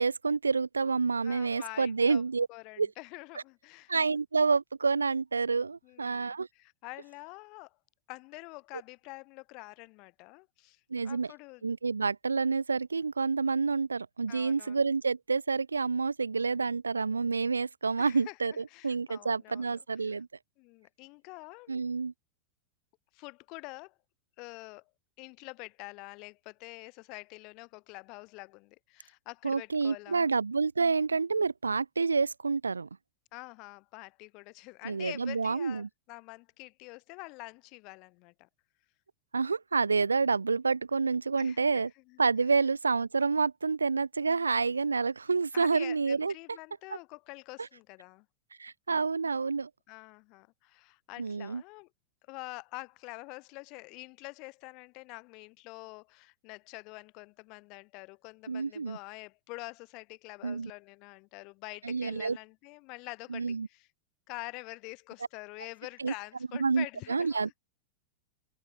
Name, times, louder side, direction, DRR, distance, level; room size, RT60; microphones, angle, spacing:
voice 1, 0.0-2.5 2.8-2.9 3.9-6.5 10.9-11.3 11.6-20.3 21.7-22.1 29.4-32.9 34.8-35.9 39.3-41.9 42.2-46.3 48.6-49.7 51.2-51.6 58.5-59.0 60.4-60.7 61.8-62.4 63.3-63.7 66.0-66.1 66.6-67.5, right 4 dB, 75° right, 0.5 m, -28 dB
voice 2, 1.2-2.2 2.5-3.9 5.8-7.8 8.1-11.7 14.3-14.8 18.0-20.2 20.6-21.9 23.1-23.9 24.4-24.9 25.2-30.3 33.3-38.5 41.4-42.2 45.5-48.3 49.9-51.9 52.3-63.9 64.3-67.6, left 27 dB, 40° left, 2.2 m, -46 dB
open air
figure-of-eight pair, 90°, 0 cm